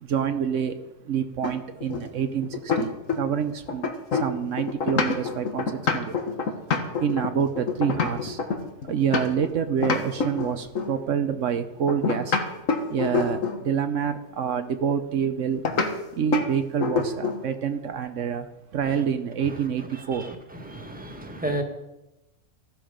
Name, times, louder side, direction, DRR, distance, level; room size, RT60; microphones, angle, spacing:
voice 1, 0.0-6.2 7.0-8.4 8.8-12.4 12.9-15.6 16.1-20.3, right 7 dB, 75° right, 9 dB, 1.1 m, -27 dB
sound 1, 1.4-3.4 3.7-9.5 9.8-11.0 11.9-13.7 15.6-15.9 16.3-16.5 16.8-17.5, left 5 dB, 85° left, 1.8 m, -26 dB
voice 2, 20.6-21.6, right 1 dB, 5° right, 3 dB, 1.7 m, -31 dB
15.0 x 12.0 x 5.1 m, 0.96 s
omnidirectional pair, 1.3 m